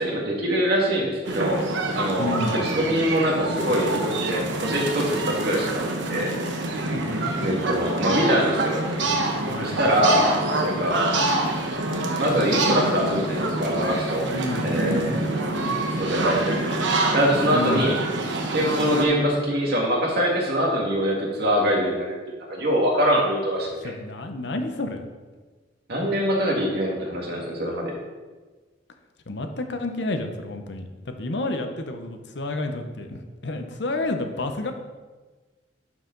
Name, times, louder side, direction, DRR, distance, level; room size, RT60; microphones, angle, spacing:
voice 1, 0.0-1.6 2.0-5.8 6.1-6.3 7.4-8.8 9.6-10.3 10.6-11.1 12.2-14.3 14.6-15.2 16.0-16.8 17.1-17.9 18.5-23.9 25.9-27.9, equal, 60° right, -2 dB, 2.0 m, -23 dB
sound 1, 1.2-19.0, right 2 dB, 80° right, 1.1 m, -26 dB
voice 2, 2.2-2.6 6.7-7.5 9.5-9.8 14.3-15.2 17.5-17.9 23.8-25.1 29.3-34.7, left 2 dB, 65° left, 6 dB, 0.8 m, -30 dB
sound 2, 12.5-19.3, equal, ahead, 0.7 m, -41 dB
11.5 x 4.8 x 3.9 m, 1.3 s
head